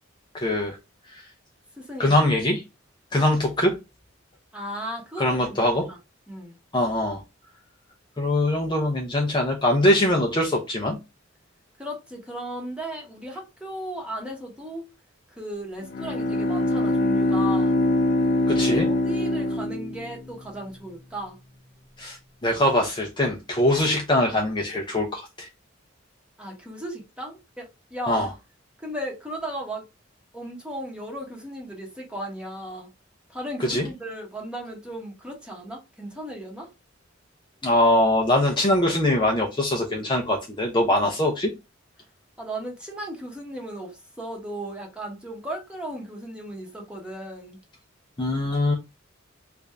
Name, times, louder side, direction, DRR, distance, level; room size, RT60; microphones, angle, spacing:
voice 1, 0.3-0.8 1.1-1.2 2.0-2.6 3.1-3.7 5.2-5.9 6.7-7.2 8.2-11.0 18.5-18.9 22.0-25.5 28.1-28.3 33.6-33.9 37.6-41.5 48.2-48.7, left 1 dB, 25° left, 0.6 m, -22 dB
voice 2, 1.8-2.2 4.5-6.0 6.3-6.6 11.8-14.9 15.4-17.7 18.6-21.4 26.4-28.3 28.8-29.8 30.3-32.9 33.3-36.7 42.4-47.6, right 1 dB, 5° right, 1.1 m, -36 dB
Bowed string instrument, 15.8-20.5, left 1 dB, 60° left, 0.7 m, -23 dB
3.4 x 2.5 x 3.3 m
head